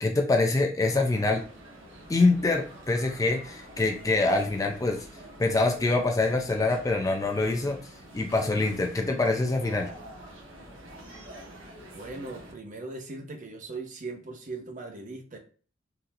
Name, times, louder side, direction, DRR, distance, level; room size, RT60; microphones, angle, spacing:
voice 1, 0.0-1.4 2.1-5.0 5.4-7.8 8.1-9.9, left 2 dB, 15° left, 2 dB, 0.3 m, -25 dB
sound 1, 0.8-12.5, right 1 dB, 80° right, 1.1 m, -47 dB
voice 2, 11.9-15.4, right 3 dB, 40° right, 4 dB, 0.6 m, -39 dB
3.9 x 2.7 x 2.6 m, 0.41 s
head